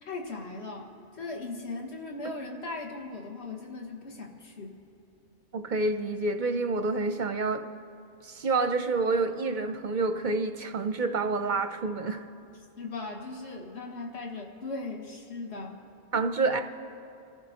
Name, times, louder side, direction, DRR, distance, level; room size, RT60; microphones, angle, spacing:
voice 1, 0.0-4.8 12.8-15.8, left 3 dB, 60° left, -1 dB, 2.0 m, -38 dB
voice 2, 5.5-7.7 8.2-12.2 16.1-16.6, right 3 dB, 50° right, 7 dB, 0.7 m, -28 dB
27.5 x 14.5 x 2.9 m, 2.8 s
omnidirectional pair, 1.3 m